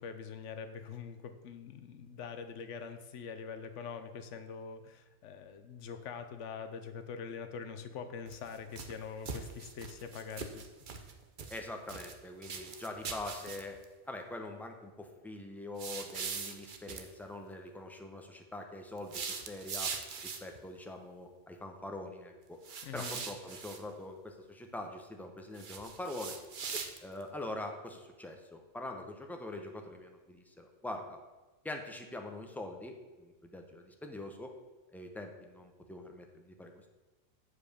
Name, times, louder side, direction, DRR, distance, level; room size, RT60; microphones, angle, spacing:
voice 1, 0.0-10.7 22.8-23.2, left 6 dB, 65° left, 9 dB, 1.0 m, -44 dB
sound 1, 8.3-8.9 9.2-11.1 11.4-12.1 12.4-13.8 15.8-17.1 19.0-20.6 22.6-23.8 25.5-27.2, right 5 dB, 45° right, 0.7 m, -41 dB
voice 2, 11.5-13.8 14.1-20.0 20.2-22.6 22.9-26.4 27.0-31.2 31.6-34.6 34.9-36.9, left 2 dB, ahead, 3 dB, 0.4 m, -44 dB
7.4 x 4.9 x 6.5 m, 1.2 s
omnidirectional pair, 1.4 m